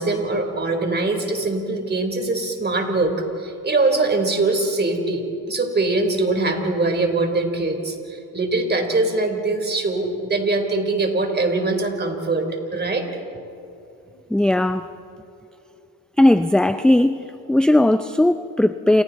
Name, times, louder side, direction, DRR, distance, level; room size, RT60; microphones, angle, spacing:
voice 1, 0.0-13.1, right 2 dB, 25° right, 5 dB, 3.8 m, -22 dB
voice 2, 14.3-14.9 16.2-17.2 17.5-19.0, left 1 dB, ahead, 11 dB, 0.4 m, -17 dB
29.0 x 27.5 x 4.1 m, 2.7 s
cardioid pair, 90°, 39 cm